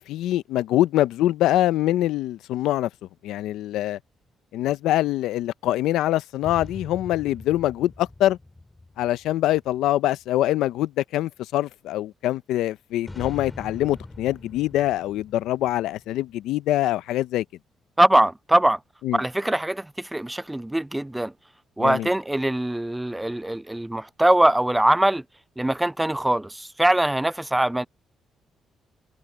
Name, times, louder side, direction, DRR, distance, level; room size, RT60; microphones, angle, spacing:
voice 1, 0.0-2.9 3.2-4.0 4.5-8.4 9.0-17.4 19.0-19.2 21.8-22.1, left 14 dB, 90° left, 0.5 m, -24 dB
sound 1, 6.4-10.1 13.0-16.8, left 2 dB, 15° left, 3.1 m, -43 dB
voice 2, 18.0-18.8 19.1-21.3 21.8-25.2 25.6-27.9, right 1 dB, 10° right, 0.4 m, -22 dB
cardioid pair, 90°, 0 cm